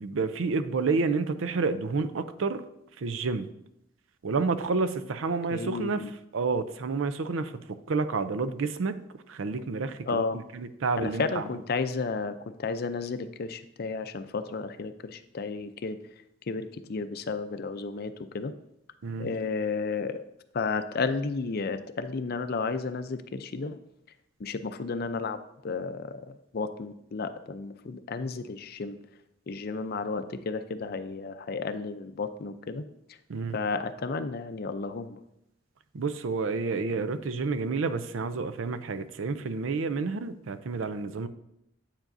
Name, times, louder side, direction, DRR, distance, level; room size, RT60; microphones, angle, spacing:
voice 1, 0.0-2.6 3.0-3.5 4.2-6.0 6.3-9.0 9.3-11.5 19.0-19.3 33.3-33.6 35.9-41.3, right 4 dB, 80° right, 11 dB, 0.5 m, -29 dB
voice 2, 5.5-6.1 10.1-10.4 11.0-16.0 16.5-18.5 19.2-20.2 20.5-23.8 24.4-29.0 29.5-32.8 33.1-33.2 33.5-35.2, left 4 dB, 50° left, 10 dB, 0.5 m, -32 dB
8.8 x 7.3 x 2.6 m, 0.81 s
head